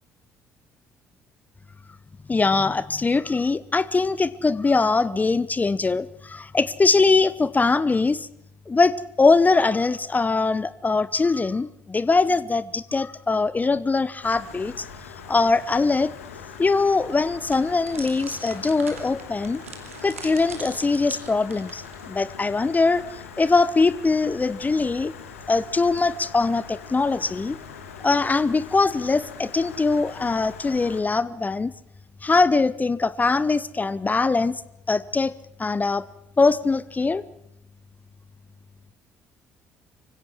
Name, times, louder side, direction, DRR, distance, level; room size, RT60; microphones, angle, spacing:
voice 1, 2.3-8.3 8.7-14.8 15.3-16.1 16.6-19.6 20.0-23.0 23.4-25.1 25.5-27.6 28.0-31.7 32.2-34.6 34.9-35.3 35.6-36.0 36.4-37.2, left 3 dB, 25° left, 17 dB, 0.8 m, -22 dB
Stream, 14.2-31.0, left 6 dB, 80° left, 1.9 m, -42 dB
sound 1, 17.5-22.2, right 5 dB, 85° right, 2.5 m, -42 dB
25.0 x 16.5 x 6.3 m, 0.79 s
figure-of-eight pair, 50°, 7 cm